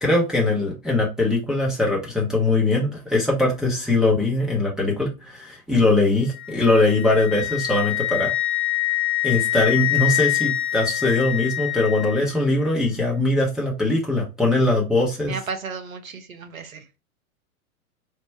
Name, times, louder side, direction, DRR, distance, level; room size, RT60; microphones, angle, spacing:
voice 1, 0.0-8.3 9.2-15.3, left 2 dB, ahead, 0.6 m, -21 dB
Wind instrument woodwind instrument, 6.3-12.3, left 16 dB, 80° left, 0.8 m, -25 dB
voice 2, 15.3-17.0, right 5 dB, 70° right, 0.9 m, -34 dB
3.4 x 2.0 x 4.2 m
figure-of-eight pair, 95°, 42 cm